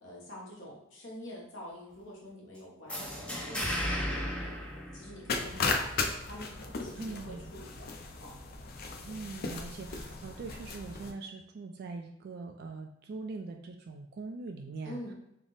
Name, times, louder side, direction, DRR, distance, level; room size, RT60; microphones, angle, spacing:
voice 1, 0.0-4.0 4.3-4.5 4.9-7.9 8.2-8.3 14.8-15.1, left 1 dB, 75° left, -4 dB, 1.2 m, -46 dB
sound 1, 2.9-5.6, equal, 5° left, 0.6 m, -35 dB
sound 2, 5.3-11.1, left 4 dB, 50° left, 0.4 m, -36 dB
voice 2, 7.0-7.5 9.1-15.1, right 3 dB, 55° right, 4 dB, 0.3 m, -42 dB
3.4 x 2.0 x 3.9 m, 0.84 s
head